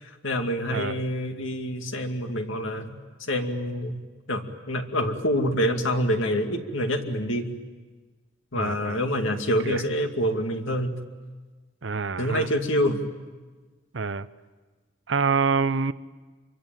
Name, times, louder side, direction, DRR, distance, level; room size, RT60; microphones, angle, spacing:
voice 1, 0.0-4.0 4.3-7.5 8.5-11.0 12.2-13.0, equal, 80° left, 5 dB, 2.4 m, -26 dB
voice 2, 0.7-1.0 8.5-9.0 9.6-9.8 11.8-12.5 13.9-14.3 15.1-15.9, right 5 dB, 65° right, 14 dB, 0.7 m, -26 dB
26.5 x 24.0 x 9.0 m, 1.3 s
head